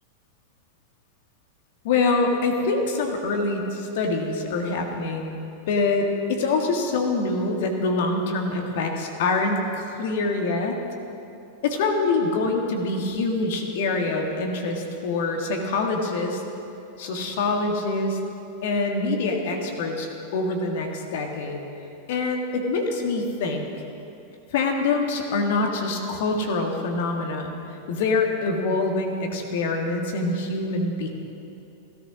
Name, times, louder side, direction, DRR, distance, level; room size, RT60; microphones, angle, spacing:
voice 1, 1.8-5.4 5.7-10.8 11.6-16.4 17.0-18.2 18.6-21.6 22.1-23.6 24.5-31.1, left 3 dB, 55° left, 2 dB, 1.9 m, -25 dB
17.0 x 13.0 x 6.2 m, 2.8 s
figure-of-eight pair, 90°, 0 cm